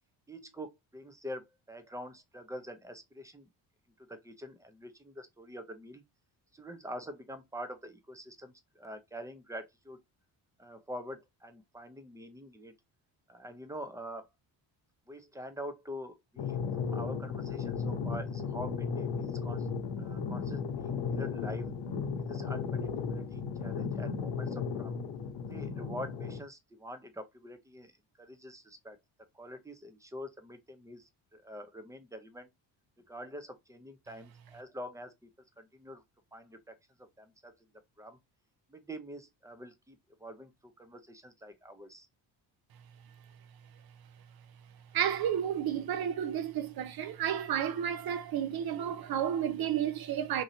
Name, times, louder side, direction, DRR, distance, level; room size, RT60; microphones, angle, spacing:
voice 1, 0.3-3.5 4.0-6.0 6.5-10.0 10.6-12.7 13.3-14.3 15.1-19.7 20.0-21.7 22.2-25.0 25.5-27.9 28.2-29.0 29.3-32.5 33.1-35.1 35.6-36.0 36.3-37.5 38.0-38.2 38.7-42.1, equal, 5° right, 0.6 m, -45 dB
sound 1, 16.4-26.4, left 5 dB, 60° left, 0.9 m, -35 dB
voice 2, 44.9-50.4, right 9 dB, 50° right, 0.6 m, -31 dB
2.9 x 2.8 x 2.6 m
cardioid pair, 75°, 47 cm